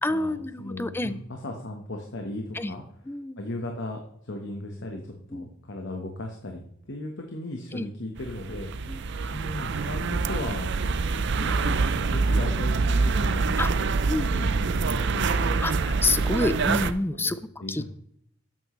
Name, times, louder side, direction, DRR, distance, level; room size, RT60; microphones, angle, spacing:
voice 1, 0.0-1.1 2.5-2.7 3.1-3.4 5.3-5.5 7.7-7.9 8.9-9.0 13.6-13.7 14.1-14.5 15.6-17.4 17.7-17.8, left 2 dB, 10° left, 14 dB, 0.5 m, -28 dB
voice 2, 0.6-2.8 3.4-6.6 6.9-10.7 11.4-13.7 14.3-15.6 16.4-16.6 17.2-17.8, left 1 dB, 60° left, 2 dB, 1.4 m, -37 dB
sound 1, 8.2-16.9, right 4 dB, 60° right, 0.6 m, -25 dB
12.5 x 9.0 x 3.2 m, 0.71 s
head